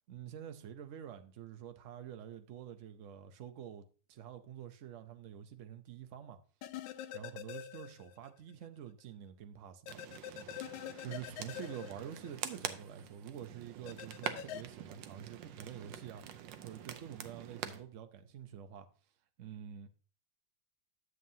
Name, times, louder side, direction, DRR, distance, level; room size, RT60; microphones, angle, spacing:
voice 1, 0.1-6.4 7.1-10.0 11.0-16.2 16.6-18.9 19.4-19.9, right 9 dB, 60° right, 0.8 m, -47 dB
sound 1, 6.6-8.3 8.6-8.7 9.9-12.7 13.9-14.6, left 11 dB, 85° left, 1.3 m, -45 dB
sound 2, 9.9-17.8, right 9 dB, 80° right, 1.4 m, -46 dB
9.4 x 7.3 x 2.7 m
omnidirectional pair, 2.1 m